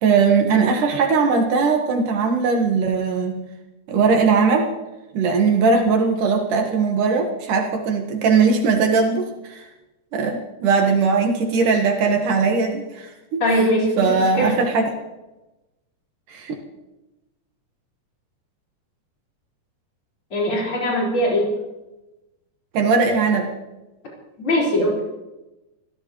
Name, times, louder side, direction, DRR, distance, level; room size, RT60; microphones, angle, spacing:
voice 1, 0.0-3.4 3.9-4.7 5.1-9.6 10.1-13.4 14.0-14.9 16.3-16.6 22.7-23.5, right 5 dB, 75° right, 2 dB, 3.0 m, -19 dB
voice 2, 13.4-14.6 20.3-21.5 24.4-25.0, equal, 40° left, -4 dB, 5.4 m, -21 dB
26.5 x 15.5 x 3.1 m, 1.0 s
omnidirectional pair, 3.7 m